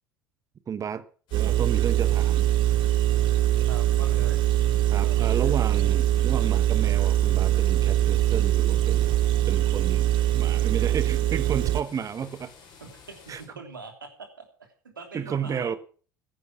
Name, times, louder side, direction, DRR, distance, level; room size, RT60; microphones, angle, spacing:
voice 1, 0.7-1.0 1.3-2.5 4.9-9.2 9.4-12.5 13.3-13.4 15.1-15.8, right 7 dB, 30° right, 1.1 m, -32 dB
sound 1, 1.3-13.5, left 5 dB, 50° left, 6.4 m, -51 dB
Engine, 1.3-11.8, right 13 dB, 50° right, 0.7 m, -22 dB
voice 2, 3.7-4.4 5.0-5.6 12.8-15.8, right 4 dB, 80° right, 3.1 m, -43 dB
sound 2, 3.9-9.5, left 10 dB, 65° left, 1.6 m, -48 dB
14.5 x 11.0 x 5.9 m
figure-of-eight pair, 65°, 11 cm